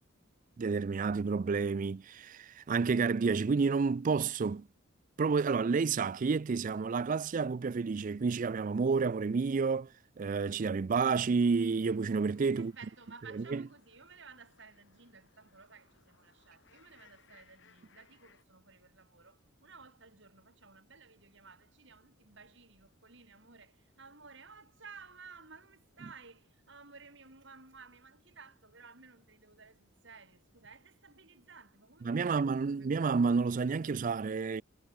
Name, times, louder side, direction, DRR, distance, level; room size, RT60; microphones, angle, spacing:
voice 1, 0.6-4.7 5.2-9.9 10.2-12.7 13.4-13.6 32.1-34.6, right 5 dB, 40° right, 0.4 m, -30 dB
sound 1, 11.1-18.4, left 5 dB, 60° left, 7.7 m, -67 dB
voice 2, 12.6-33.1, right 5 dB, 60° right, 7.2 m, -55 dB
head